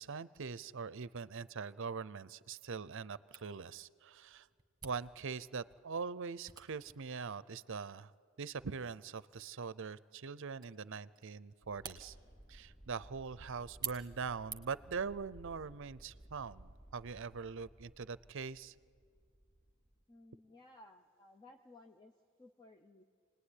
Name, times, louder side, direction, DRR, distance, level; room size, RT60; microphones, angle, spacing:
voice 1, 0.0-4.5 4.8-8.1 8.4-12.2 12.5-18.7, right 5 dB, 60° right, 18 dB, 0.6 m, -42 dB
Camera, 3.3-14.9, right 7 dB, 20° right, 1.7 m, -52 dB
sound 1, 11.6-20.0, right 1 dB, 35° left, 2.9 m, -59 dB
voice 2, 20.1-23.0, left 2 dB, 20° left, 3 dB, 0.8 m, -59 dB
28.0 x 19.5 x 10.0 m, 2.1 s
head